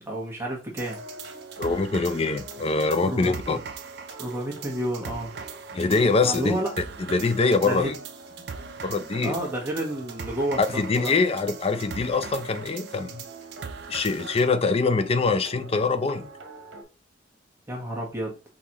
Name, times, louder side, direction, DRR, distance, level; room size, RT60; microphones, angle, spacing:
voice 1, 0.1-1.0 3.0-3.6 4.2-5.3 6.2-6.7 7.6-7.9 9.2-10.6 11.0-11.1 17.7-18.3, right 1 dB, 15° right, 1.3 m, -30 dB
sound 1, 0.8-14.5, right 6 dB, 60° right, 0.5 m, -41 dB
sound 2, 0.8-16.8, right 2 dB, 85° right, 1.0 m, -44 dB
voice 2, 1.6-3.6 5.7-7.9 8.8-9.4 10.6-13.2 13.9-16.3, left 4 dB, 35° left, 0.4 m, -24 dB
4.2 x 3.9 x 3.0 m
head